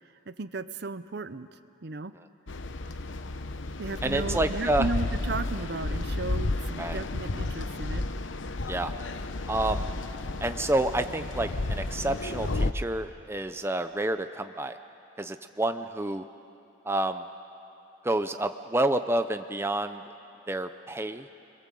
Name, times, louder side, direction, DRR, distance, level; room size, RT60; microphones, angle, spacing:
voice 1, 0.3-2.1 3.8-8.0, right 3 dB, 55° right, 13 dB, 0.7 m, -35 dB
sound 1, 2.5-12.7, left 2 dB, 75° left, 0.8 m, -32 dB
voice 2, 4.0-4.9 6.8-7.0 8.7-8.9 9.5-9.9 10.4-14.8 15.2-16.2 16.8-17.2 18.0-20.0 20.5-21.3, right 1 dB, 10° right, 9 dB, 0.5 m, -29 dB
30.0 x 21.5 x 7.6 m, 2.7 s
head